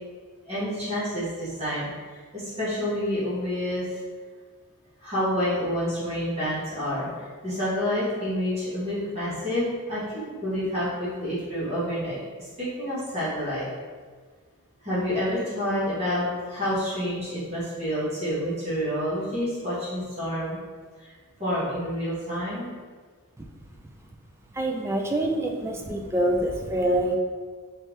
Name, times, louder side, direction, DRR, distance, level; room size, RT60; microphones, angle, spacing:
voice 1, 0.4-4.0 5.0-10.0 10.4-13.7 14.8-20.6 21.0-21.1 21.4-22.7, equal, 30° right, -11 dB, 1.2 m, -28 dB
voice 2, 24.5-27.2, right 1 dB, 10° right, 1 dB, 0.3 m, -26 dB
3.3 x 3.2 x 3.0 m, 1.6 s
head